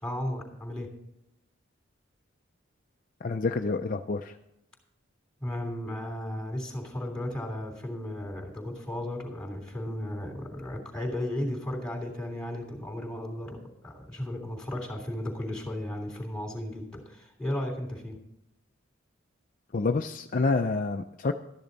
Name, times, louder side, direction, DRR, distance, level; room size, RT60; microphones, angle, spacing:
voice 1, 0.0-0.9 5.4-18.2, left 1 dB, 5° left, 2 dB, 3.1 m, -35 dB
voice 2, 3.2-4.4 19.7-21.3, left 3 dB, 45° left, 5 dB, 0.5 m, -28 dB
13.0 x 10.5 x 4.0 m, 0.85 s
head